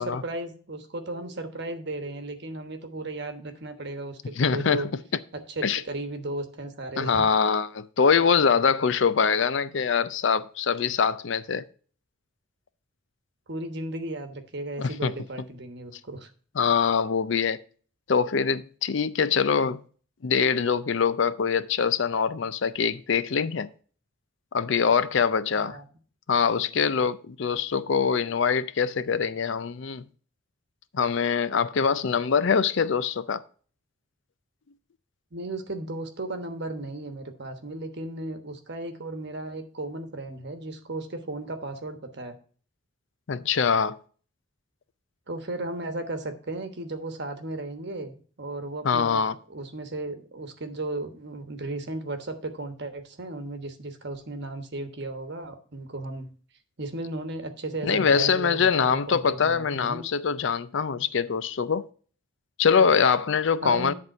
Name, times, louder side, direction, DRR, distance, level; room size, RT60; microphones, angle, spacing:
voice 1, 0.0-4.9 5.6-7.2 13.5-16.3 25.6-25.8 35.3-42.4 45.3-49.2 49.5-56.3 56.8-60.0 63.6-63.9, right 2 dB, 50° right, 1.2 m, -35 dB
voice 2, 4.4-4.9 5.6-5.8 7.0-11.7 14.8-15.1 16.6-17.6 18.1-19.8 20.2-23.7 24.5-25.8 26.3-30.0 30.9-33.4 43.3-43.9 48.8-49.4 57.8-61.9 62.6-63.9, left 6 dB, 60° left, 0.5 m, -24 dB
10.5 x 3.6 x 6.5 m
head